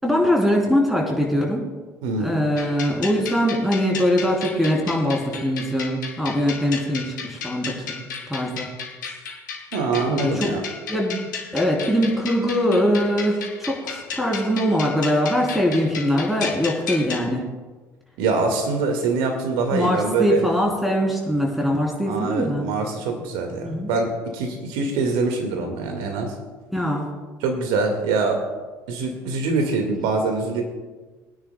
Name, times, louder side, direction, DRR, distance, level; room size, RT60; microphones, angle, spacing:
voice 1, 0.0-1.7 2.2-8.0 8.3-8.7 10.1-10.5 10.9-11.2 11.5-17.5 19.7-22.7 23.6-23.9 26.7-27.1, equal, ahead, -1 dB, 3.6 m, -22 dB
voice 2, 2.0-2.4 9.7-10.6 18.2-20.5 22.1-26.3 27.4-28.4 28.9-30.6, right 4 dB, 60° right, 3 dB, 2.0 m, -24 dB
sound 1, 2.6-17.3, left 6 dB, 75° left, 1.1 m, -34 dB
22.5 x 9.7 x 2.3 m, 1.3 s
figure-of-eight pair, 60°, 10 cm